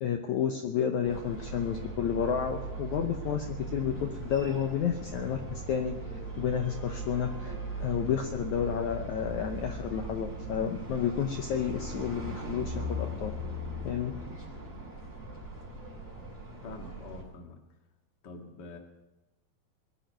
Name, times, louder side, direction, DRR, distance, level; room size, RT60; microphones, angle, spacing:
voice 1, 0.0-6.0 6.4-7.6 7.8-13.3 13.8-14.1, left 8 dB, 80° left, 5 dB, 1.7 m, -31 dB
sound 1, 1.0-17.2, right 1 dB, 10° left, 4.8 m, -39 dB
voice 2, 16.6-17.6 18.2-18.8, left 3 dB, 45° left, 4 dB, 1.3 m, -45 dB
21.5 x 7.3 x 9.2 m, 1.0 s
omnidirectional pair, 4.7 m